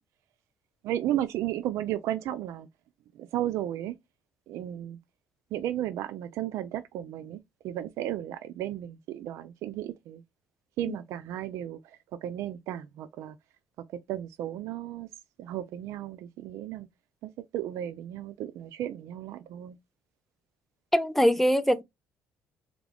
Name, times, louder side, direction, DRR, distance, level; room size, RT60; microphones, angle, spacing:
voice 1, 0.8-2.7 3.2-3.9 4.5-5.0 5.5-7.4 7.6-10.2 10.8-11.8 12.2-13.4 13.9-15.1 15.4-16.9 17.2-19.8, right 12 dB, 75° right, 0.3 m, -34 dB
voice 2, 20.9-21.8, equal, 5° left, 0.5 m, -23 dB
3.6 x 2.3 x 3.3 m
cardioid pair, 90°, 5 cm